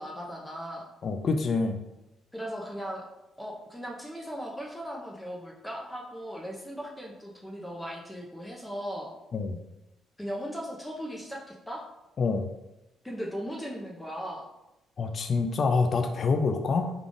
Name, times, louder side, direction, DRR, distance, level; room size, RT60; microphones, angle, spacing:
voice 1, 0.0-0.9 2.3-3.1 3.4-9.1 10.2-11.8 13.0-14.5, equal, 10° left, -2 dB, 0.6 m, -37 dB
voice 2, 1.0-1.8 9.3-9.6 12.2-12.5 15.0-16.9, left 4 dB, 50° left, 6 dB, 0.4 m, -26 dB
3.7 x 2.4 x 3.7 m, 0.93 s
cardioid pair, 90°, 0 cm